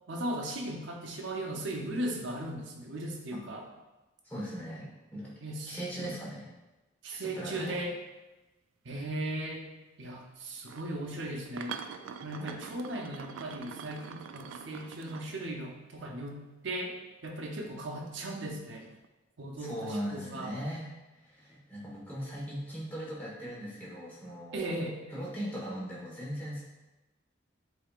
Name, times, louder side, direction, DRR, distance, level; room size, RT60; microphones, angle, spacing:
voice 1, 0.1-3.7 5.4-6.1 7.0-8.0 8.8-9.7 10.0-11.8 12.2-16.4 16.6-17.0 17.2-18.9 19.4-20.5 24.5-25.0, right 1 dB, 70° right, 1 dB, 0.7 m, -37 dB
voice 2, 4.2-5.3 5.7-6.4 7.1-7.8 12.4-12.6 19.6-20.9 21.2-24.8 25.1-26.6, equal, 10° left, -7 dB, 1.3 m, -39 dB
sound 1, 10.6-10.9 11.5-15.8 18.8-19.1, right 6 dB, 85° right, 0.3 m, -44 dB
7.6 x 2.8 x 2.4 m, 1.1 s
head